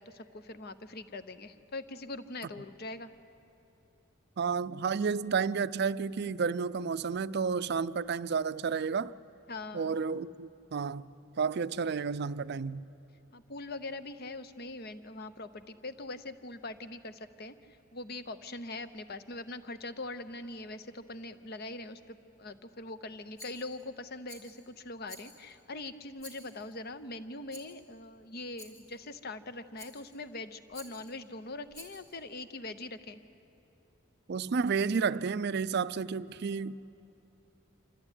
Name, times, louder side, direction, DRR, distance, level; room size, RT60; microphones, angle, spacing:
voice 1, 0.0-3.1 9.5-10.0 13.3-17.5 17.9-33.2, left 2 dB, 50° left, 0.8 m, -42 dB
voice 2, 4.4-9.1 9.7-12.8 34.3-36.8, right 5 dB, 50° right, 0.4 m, -31 dB
Rattle, 23.4-23.9 24.3-24.6 25.1-25.6 26.2-26.8 27.5-27.8 28.6-29.0 29.8-30.2 30.7-31.2 31.7-32.2, left 1 dB, 85° left, 4.1 m, -51 dB
27.0 x 14.0 x 9.9 m
head